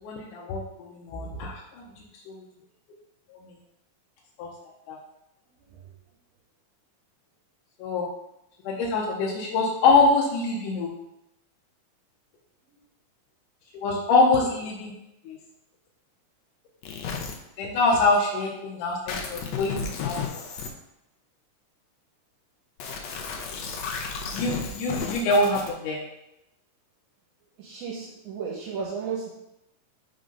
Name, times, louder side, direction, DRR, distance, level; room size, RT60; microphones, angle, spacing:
voice 1, 0.0-1.8 2.3-2.4 3.3-3.4 4.4-5.0 7.8-8.1 8.6-10.9 13.7-14.9 15.3-15.4 17.6-20.4 24.3-26.0, left 3 dB, 85° left, -3 dB, 2.3 m, -25 dB
sound 1, 16.8-17.3 19.1-20.7 22.8-25.7, left 6 dB, 70° left, 1.7 m, -33 dB
voice 2, 27.6-29.3, right 6 dB, 75° right, -3 dB, 2.3 m, -34 dB
5.4 x 3.8 x 5.3 m, 0.87 s
omnidirectional pair, 3.6 m